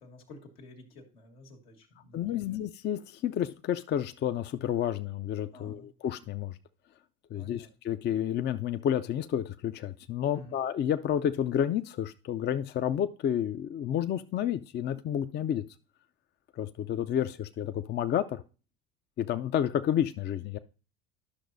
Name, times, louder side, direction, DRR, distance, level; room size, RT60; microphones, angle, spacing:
voice 1, 0.0-2.6 5.5-5.9 7.3-7.7 10.3-10.6, left 2 dB, 85° left, 1.7 m, -51 dB
voice 2, 2.1-6.6 7.3-15.6 16.6-18.4 19.2-20.6, left 10 dB, 35° left, 0.5 m, -30 dB
11.5 x 6.0 x 2.6 m
hypercardioid pair, 70°, 29 cm